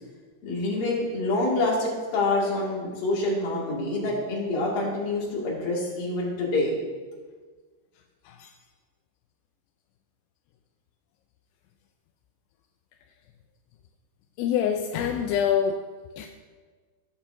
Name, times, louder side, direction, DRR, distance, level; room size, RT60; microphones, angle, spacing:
voice 1, 0.4-6.8, left 2 dB, 60° left, -5 dB, 3.9 m, -26 dB
voice 2, 14.4-16.3, left 8 dB, 85° left, 4 dB, 2.7 m, -26 dB
17.5 x 7.5 x 2.7 m, 1.5 s
omnidirectional pair, 4.7 m